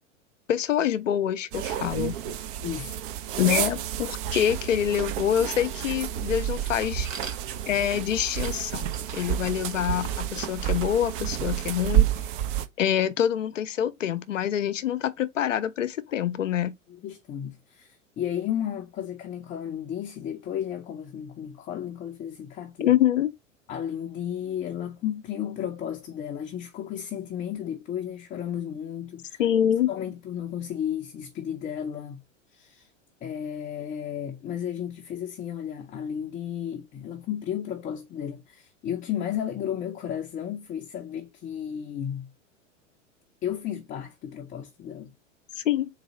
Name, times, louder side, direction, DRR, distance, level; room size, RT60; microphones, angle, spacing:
voice 1, 0.5-2.2 3.4-7.1 7.7-8.9 9.1-12.1 12.8-16.7 22.8-23.3 29.4-29.9 45.6-45.9, left 10 dB, 75° left, 0.6 m, -25 dB
sound 1, 1.5-12.7, right 11 dB, 45° right, 0.6 m, -29 dB
voice 2, 2.6-3.0 16.9-22.9 23.7-29.4 29.9-32.2 32.5-32.9 33.2-42.3 43.4-45.1, left 9 dB, 20° left, 0.5 m, -33 dB
sound 2, 6.4-11.6, right 5 dB, 85° right, 0.9 m, -46 dB
4.0 x 2.7 x 4.0 m
figure-of-eight pair, 85°, 39 cm